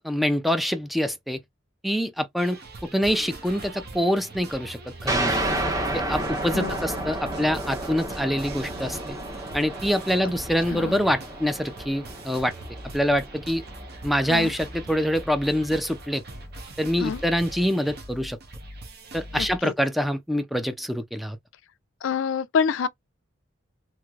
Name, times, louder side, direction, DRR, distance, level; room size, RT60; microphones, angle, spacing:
voice 1, 0.0-1.4 1.8-5.4 5.9-9.2 9.5-12.5 12.9-13.6 14.0-16.2 16.8-18.4 19.1-21.4, equal, ahead, 0.4 m, -25 dB
sound 1, 2.4-19.6, right 2 dB, 50° right, 0.9 m, -41 dB
sound 2, 5.1-14.3, right 1 dB, 15° right, 1.0 m, -31 dB
voice 2, 10.7-11.1 14.3-14.5 17.0-17.2 19.3-19.7 22.0-22.9, left 6 dB, 70° left, 0.3 m, -27 dB
3.1 x 2.9 x 2.3 m
head